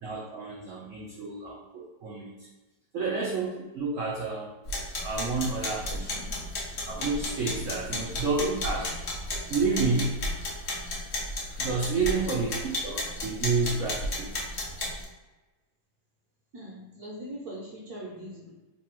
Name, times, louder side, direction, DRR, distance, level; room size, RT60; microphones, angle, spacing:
voice 1, 0.0-2.5 2.9-4.6 5.0-6.3 6.9-8.9 9.3-10.2 11.6-14.4, right 4 dB, 85° right, -3 dB, 0.7 m, -30 dB
sound 1, 4.7-15.0, left 1 dB, 55° left, 0.8 m, -34 dB
voice 2, 16.5-18.5, right 1 dB, 65° right, -2 dB, 1.0 m, -41 dB
3.3 x 2.3 x 4.3 m, 1.1 s
omnidirectional pair, 2.0 m